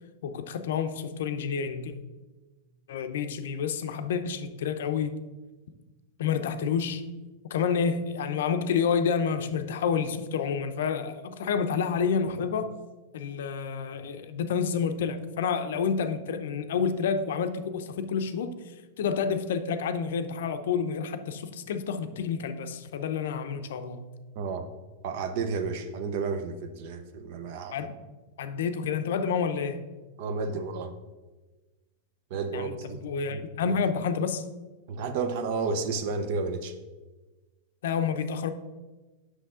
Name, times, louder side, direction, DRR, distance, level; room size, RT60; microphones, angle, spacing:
voice 1, 0.2-2.0 2.9-5.2 6.2-7.0 7.5-12.7 13.1-18.5 19.0-24.2 27.7-27.9 28.4-29.8 32.5-34.4 37.8-38.5, left 6 dB, 70° left, 9 dB, 0.6 m, -29 dB
voice 2, 24.4-24.7 25.0-27.8 30.2-30.9 32.3-33.0 33.3-33.4 34.9-36.7, right 4 dB, 45° right, 9 dB, 0.7 m, -31 dB
8.1 x 6.3 x 3.7 m, 1.2 s
supercardioid pair, 175°, 0 cm